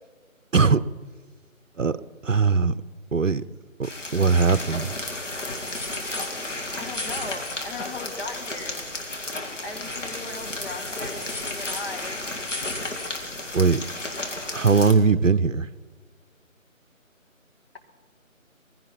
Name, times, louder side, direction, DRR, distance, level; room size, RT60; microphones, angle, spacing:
voice 1, 2.2-2.7 3.1-3.4 3.8-5.0 13.5-13.8 14.5-15.7, right 5 dB, 65° right, 15 dB, 0.7 m, -20 dB
sound 1, 3.8-14.9, left 2 dB, 60° left, 2.6 m, -33 dB
voice 2, 6.8-8.8 9.6-12.2, left 3 dB, 45° left, 3 dB, 2.1 m, -37 dB
21.0 x 15.5 x 4.4 m, 1.5 s
figure-of-eight pair, 160°, 41 cm